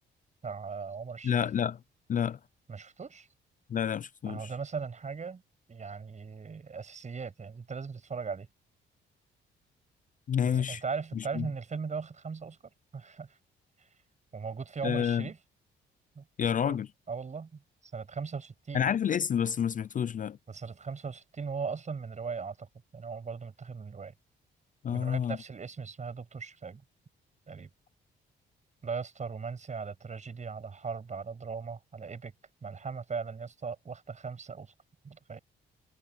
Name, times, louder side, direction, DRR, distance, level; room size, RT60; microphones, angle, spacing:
voice 1, 0.4-1.5 2.7-3.3 4.3-5.4 5.7-8.5 10.4-12.6 12.9-13.4 13.8-13.9 14.3-15.4 16.1-16.2 16.6-16.8 17.1-18.9 20.5-24.1 24.9-26.8 27.5-27.7 28.8-32.3 32.6-34.7 35.0-35.4, right 5 dB, 35° right, 6.9 m, -38 dB
voice 2, 1.2-1.8 2.1-2.4 3.7-4.5 10.3-10.8 11.3-11.5 14.8-15.3 16.4-16.9 18.7-20.4 24.8-25.4, left 8 dB, 40° left, 0.5 m, -29 dB
cardioid pair, 90°, 20 cm